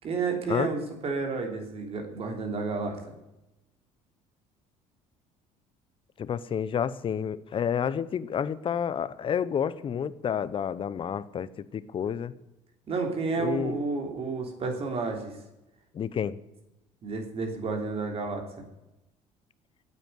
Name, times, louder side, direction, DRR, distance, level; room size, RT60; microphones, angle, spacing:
voice 1, 0.0-3.0 12.9-15.3 17.0-18.4, right 4 dB, 45° right, 3 dB, 3.2 m, -31 dB
voice 2, 6.2-12.3 13.4-13.8 15.9-16.4, left 8 dB, 40° left, 16 dB, 0.7 m, -30 dB
9.6 x 8.3 x 9.3 m, 0.95 s
cardioid pair, 100°, 14 cm